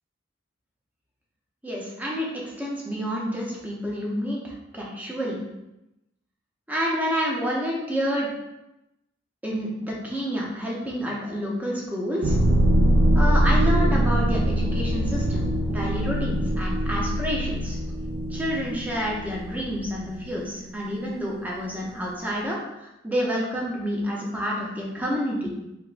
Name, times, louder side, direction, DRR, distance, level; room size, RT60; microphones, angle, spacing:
voice 1, 1.6-5.4 6.7-8.3 9.4-12.4 13.1-17.8 18.3-25.6, equal, 10° right, -3 dB, 0.6 m, -29 dB
sound 1, 12.2-21.0, right 1 dB, 65° right, 0.4 m, -23 dB
3.4 x 2.9 x 2.4 m, 0.91 s
head